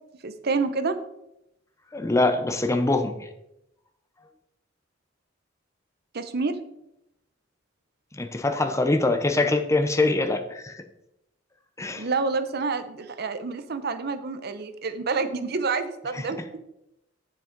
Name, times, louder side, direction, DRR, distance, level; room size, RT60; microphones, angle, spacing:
voice 1, 0.2-1.0 6.1-6.6 12.0-16.6, right 4 dB, 55° right, 10 dB, 0.7 m, -28 dB
voice 2, 1.9-3.3 8.1-10.7 11.8-12.1 16.1-16.2, left 2 dB, 15° left, 7 dB, 0.7 m, -24 dB
7.2 x 7.2 x 3.9 m, 0.85 s
head